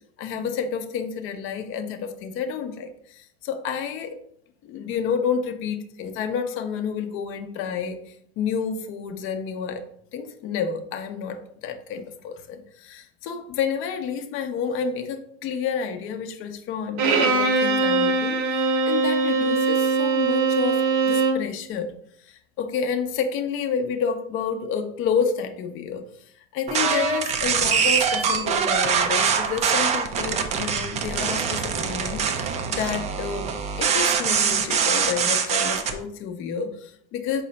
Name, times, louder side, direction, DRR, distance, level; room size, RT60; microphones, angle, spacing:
voice 1, 0.2-4.2 4.6-9.8 10.1-21.9 22.3-26.1 26.5-33.5 33.8-37.4, left 6 dB, 40° left, 7 dB, 0.5 m, -30 dB
Bowed string instrument, 17.0-21.5, right 4 dB, 60° right, 0.8 m, -21 dB
sound 1, 26.7-35.9, right 6 dB, 20° right, 0.3 m, -23 dB
4.7 x 2.1 x 3.9 m, 0.67 s
supercardioid pair, 115°, 33 cm